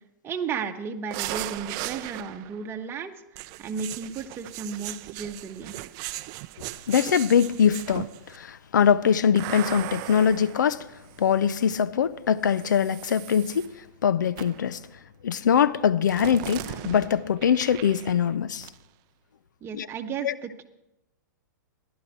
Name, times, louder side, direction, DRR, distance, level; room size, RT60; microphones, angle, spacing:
voice 1, 0.2-5.9 19.6-20.7, right 6 dB, 25° right, 1.2 m, -34 dB
sound 1, 1.1-2.6 3.3-8.4 9.4-11.5 12.5-13.7 14.4-14.7 16.1-18.4 18.6-18.8, right 17 dB, 40° right, 0.5 m, -38 dB
voice 2, 6.9-10.9 11.2-13.6 14.0-14.8 15.2-18.7 19.7-19.9 20.2-20.3, left 8 dB, 75° left, 0.5 m, -22 dB
15.0 x 11.5 x 4.5 m
hypercardioid pair, 115°, 10 cm